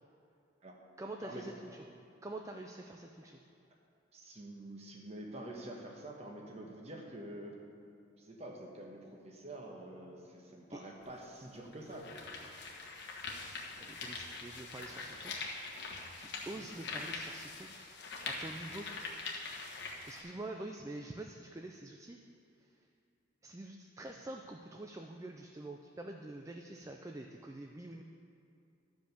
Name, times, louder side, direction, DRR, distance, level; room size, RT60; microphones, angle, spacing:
voice 1, 1.0-1.8 2.2-3.4 10.7-10.8 13.9-15.3 16.2-17.7 18.2-18.9 20.0-22.2 22.6-22.7 23.4-28.0, right 2 dB, 15° right, 3 dB, 0.4 m, -46 dB
voice 2, 4.1-7.6 8.2-12.2 16.5-16.7 18.2-18.3, right 1 dB, 30° right, 0 dB, 1.2 m, -47 dB
sound 1, 11.0-11.1 11.7-20.2, left 3 dB, 55° left, 1.3 m, -43 dB
12.5 x 5.2 x 6.7 m, 2.6 s
head